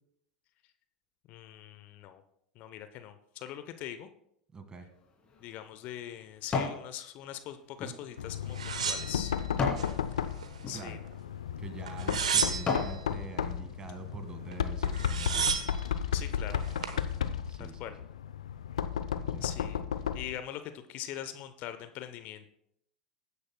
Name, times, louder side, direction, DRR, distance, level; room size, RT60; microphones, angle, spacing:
voice 1, 1.3-2.2 2.5-4.1 5.4-9.3 10.7-11.0 16.1-16.7 17.6-17.9 19.4-19.8 20.1-22.5, left 11 dB, 50° left, 10 dB, 0.8 m, -42 dB
voice 2, 4.5-4.9 10.7-11.0 11.6-15.5 17.5-17.8 19.2-19.5, right 4 dB, 25° right, 8 dB, 1.7 m, -45 dB
sound 1, 5.0-6.8 7.3-9.9 10.5-10.8 11.5-11.6 12.1-13.0 13.5-13.6, left 4 dB, 30° left, 2.8 m, -35 dB
Knock, 8.2-20.4, left 8 dB, 75° left, 0.5 m, -34 dB
sound 2, 8.5-9.9 10.3-11.1 11.9-13.0 14.5-14.6 14.8-15.8 16.5-17.0, right 6 dB, 80° right, 1.1 m, -32 dB
20.5 x 9.8 x 2.3 m, 0.75 s
figure-of-eight pair, 80°, 4 cm